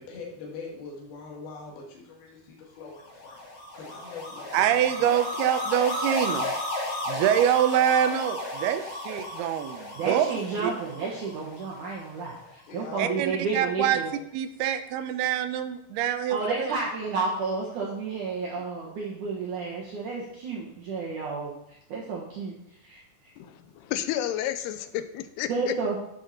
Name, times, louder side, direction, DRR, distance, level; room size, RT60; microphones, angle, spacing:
voice 1, 0.0-3.4 3.7-5.1 12.7-13.2 24.8-24.9, left 4 dB, 65° left, -2 dB, 3.6 m, -42 dB
sound 1, 3.0-12.3, left 1 dB, 35° left, 4.6 m, -34 dB
voice 2, 4.5-6.5 7.1-10.3 10.6-10.7 13.0-14.0 14.3-16.7, right 10 dB, 80° right, 9 dB, 2.5 m, -25 dB
voice 3, 9.9-14.1 16.3-21.5 21.9-22.6 22.8-23.0 25.5-26.0, right 4 dB, 60° right, -4 dB, 2.4 m, -31 dB
voice 4, 23.4-25.7, left 12 dB, 85° left, 10 dB, 2.6 m, -31 dB
11.5 x 6.8 x 4.3 m, 0.74 s
omnidirectional pair, 4.9 m